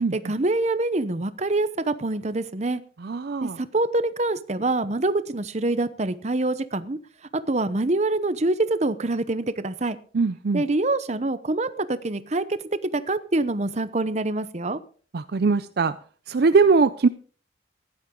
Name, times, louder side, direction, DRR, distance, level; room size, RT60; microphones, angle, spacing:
voice 1, 0.1-2.8 3.4-7.0 7.5-10.0 10.5-12.6 12.9-14.8, right 2 dB, 35° right, 13 dB, 0.8 m, -25 dB
voice 2, 3.0-3.6 10.1-10.6 15.1-16.0 16.3-17.1, right 4 dB, 55° right, 12 dB, 0.5 m, -21 dB
15.5 x 11.5 x 3.8 m, 0.41 s
head